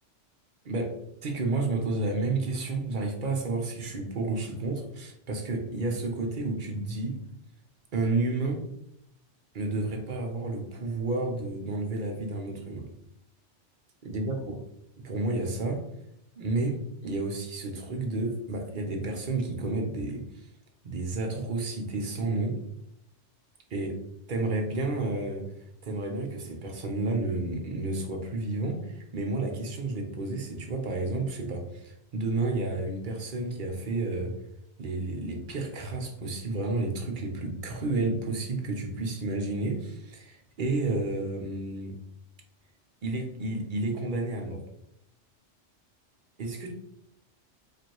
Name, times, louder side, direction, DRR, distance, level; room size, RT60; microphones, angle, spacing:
voice 1, 1.2-7.2 7.9-8.7 9.5-12.9 14.0-14.5 15.0-15.8 16.3-20.4 20.8-22.6 23.7-24.0 24.3-25.5 25.8-34.3 34.8-42.0 43.0-44.6 46.4-46.7, right 2 dB, 50° right, 2 dB, 0.8 m, -31 dB
4.8 x 2.5 x 3.0 m, 0.78 s
omnidirectional pair, 1.2 m